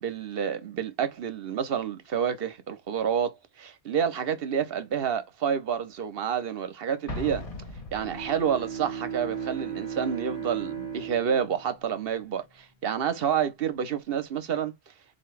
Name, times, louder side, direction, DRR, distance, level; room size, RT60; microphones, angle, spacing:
voice 1, 0.0-7.4 7.9-14.7, right 8 dB, 70° right, 1.0 m, -29 dB
Explosion, 7.1-8.7, left 2 dB, 35° left, 0.9 m, -38 dB
Bowed string instrument, 7.8-12.7, right 7 dB, 85° left, 1.9 m, -37 dB
4.1 x 2.9 x 3.2 m
omnidirectional pair, 1.0 m